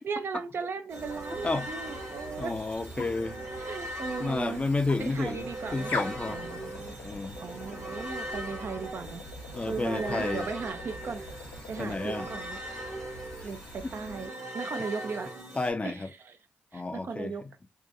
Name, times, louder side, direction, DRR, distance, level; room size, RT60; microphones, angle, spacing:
voice 1, 0.0-2.5 3.6-4.6 5.0-5.9 6.3-7.0 7.4-9.2 9.7-11.2 11.7-12.6 13.4-15.3 15.8-16.4 16.7-17.4, right 5 dB, 55° right, 0.4 m, -37 dB
sound 1, 0.9-14.3, left 2 dB, 75° left, 0.8 m, -43 dB
sound 2, 0.9-15.7, right 1 dB, 80° right, 1.0 m, -40 dB
voice 2, 2.4-3.4 4.2-6.4 7.0-7.4 9.5-10.5 11.8-12.3 13.4-13.5 13.8-13.9 15.5-16.1 16.7-17.5, left 3 dB, 25° left, 0.4 m, -31 dB
2.7 x 2.2 x 2.5 m
hypercardioid pair, 45°, 5 cm